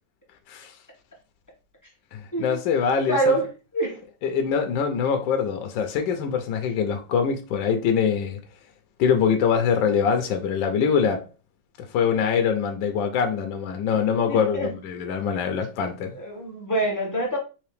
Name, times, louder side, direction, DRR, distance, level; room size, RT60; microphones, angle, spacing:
voice 1, 2.1-3.3 4.2-8.4 9.0-11.2 11.8-16.2, left 7 dB, 80° left, 1.3 m, -24 dB
voice 2, 3.1-3.5 3.7-4.0 14.3-14.7 16.1-17.4, right 2 dB, 15° left, 0.9 m, -25 dB
3.7 x 3.1 x 3.3 m
omnidirectional pair, 2.0 m